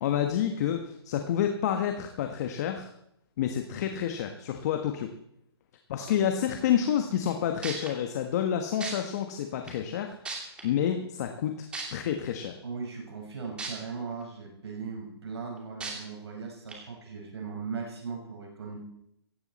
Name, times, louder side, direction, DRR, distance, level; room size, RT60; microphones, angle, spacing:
voice 1, 0.0-2.9 3.4-5.1 5.9-10.1 10.6-12.5, left 9 dB, 40° left, 5 dB, 1.4 m, -29 dB
sound 1, 7.3-7.4 7.6-7.9 8.8-8.9 9.7-9.8 10.2-10.6 11.7-11.8 13.6-13.7 14.2-14.3 15.8-15.9 16.7-16.8, right 4 dB, 10° right, 2.8 m, -35 dB
voice 2, 12.6-18.8, right 5 dB, 75° right, 1 dB, 5.2 m, -38 dB
17.0 x 15.5 x 4.3 m, 0.79 s
hypercardioid pair, 155°, 14 cm